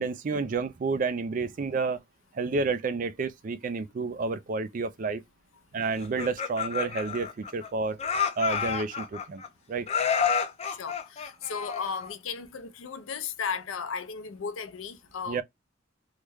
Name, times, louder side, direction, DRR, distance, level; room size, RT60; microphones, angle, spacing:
voice 1, 0.0-2.0 2.3-5.2 5.7-8.0 8.4-9.4 9.7-9.9 15.3-15.4, right 4 dB, 40° right, 0.3 m, -30 dB
Laughter, 6.0-7.7 8.0-9.5 9.9-12.1, left 7 dB, 30° left, 0.4 m, -29 dB
voice 2, 10.7-15.4, left 6 dB, 85° left, 0.6 m, -35 dB
3.1 x 2.1 x 3.4 m
head